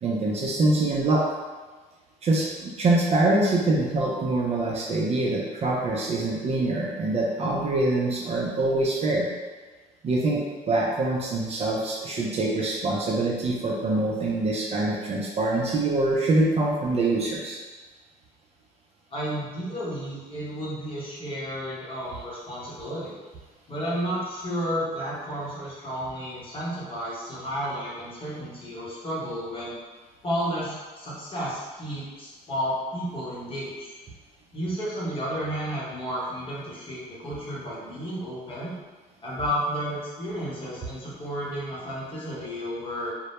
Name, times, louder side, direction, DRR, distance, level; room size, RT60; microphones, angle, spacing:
voice 1, 0.0-1.2 2.2-9.3 10.0-17.6, right 2 dB, 40° right, -3 dB, 0.4 m, -24 dB
voice 2, 19.1-23.1 23.7-29.7 30.2-33.9 34.5-38.7 39.2-43.1, equal, 30° left, -7 dB, 0.9 m, -32 dB
2.1 x 2.0 x 2.9 m, 1.3 s
cardioid pair, 110°, 17 cm